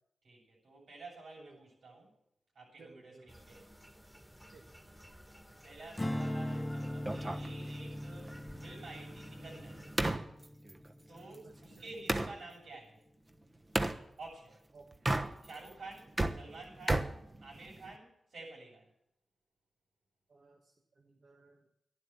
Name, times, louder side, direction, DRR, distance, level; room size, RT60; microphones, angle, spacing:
voice 1, 0.2-2.1 2.5-3.6 5.6-8.3 8.6-9.8 11.1-13.0 14.2-14.6 15.4-17.1 17.4-18.9, right 2 dB, 90° right, -3 dB, 7.5 m, -50 dB
voice 2, 2.8-3.3 4.5-4.6 11.8-11.9 14.7-14.9 20.3-21.7, right 3 dB, 65° right, 0 dB, 1.6 m, -58 dB
sound 1, 3.3-10.1, equal, 5° right, 2.2 m, -55 dB
Strum, 6.0-12.4, left 1 dB, 15° left, 0.9 m, -40 dB
sound 2, 7.1-12.4 13.7-14.0 14.9-15.7 16.0-18.0, right 2 dB, 30° right, 1.1 m, -35 dB
11.5 x 11.5 x 7.4 m, 0.77 s
cardioid pair, 75°, 0 cm